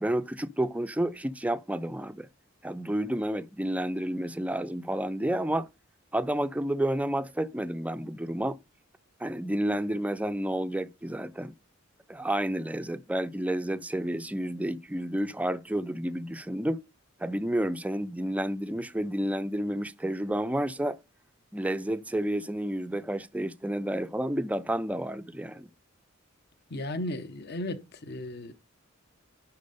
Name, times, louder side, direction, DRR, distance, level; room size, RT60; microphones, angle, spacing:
voice 1, 0.0-2.3 2.6-5.7 6.1-8.6 9.2-11.5 12.1-16.8 17.2-21.0 21.5-25.7, right 1 dB, 5° right, 0.4 m, -30 dB
voice 2, 26.7-28.5, left 1 dB, 55° left, 0.9 m, -35 dB
10.5 x 4.2 x 5.3 m
head